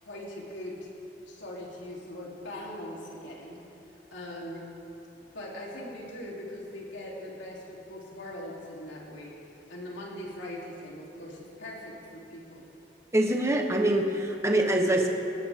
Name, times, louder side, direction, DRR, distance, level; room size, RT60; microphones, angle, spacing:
voice 1, 0.0-0.9 1.3-3.6 4.1-4.6 5.2-12.6, left 1 dB, 80° left, -4 dB, 3.5 m, -41 dB
voice 2, 13.1-15.1, right 1 dB, 15° right, 2 dB, 1.2 m, -24 dB
19.5 x 18.0 x 3.7 m, 2.9 s
head